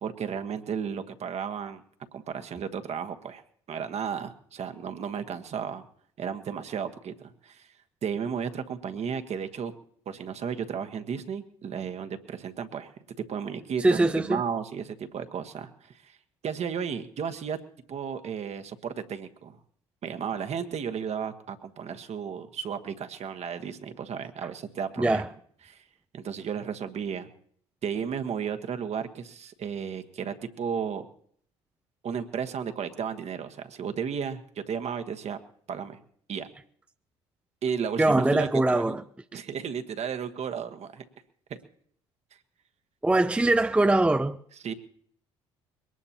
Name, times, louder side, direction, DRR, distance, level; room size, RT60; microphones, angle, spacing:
voice 1, 0.0-1.8 2.1-3.4 3.7-5.8 6.2-7.7 8.0-9.7 10.1-12.9 13.2-16.2 16.4-17.6 17.9-19.6 20.0-25.2 25.7-25.8 26.1-27.3 27.8-31.1 32.0-35.4 35.7-36.0 36.3-36.5 37.6-39.0 39.3-41.0 41.5-41.6 44.6-44.7, right 7 dB, 50° right, 1.3 m, -34 dB
voice 2, 13.8-14.4 25.0-25.3 38.0-39.0 39.3-39.4 43.0-44.4, right 2 dB, 10° right, 0.5 m, -22 dB
22.0 x 18.5 x 2.9 m
hypercardioid pair, 60°, 15 cm